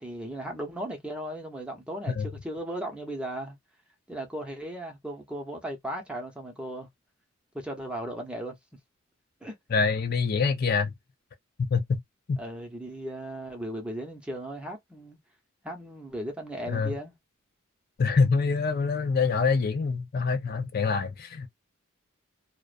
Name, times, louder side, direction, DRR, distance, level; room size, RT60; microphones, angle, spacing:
voice 1, 0.0-3.6 4.1-6.9 7.5-8.6 9.4-9.6 12.4-15.2 15.6-17.1, right 1 dB, 5° right, 0.7 m, -36 dB
voice 2, 9.7-10.9 11.6-12.0 12.3-12.4 16.7-17.0 18.0-21.5, left 5 dB, 50° left, 0.4 m, -25 dB
2.4 x 2.1 x 2.4 m
head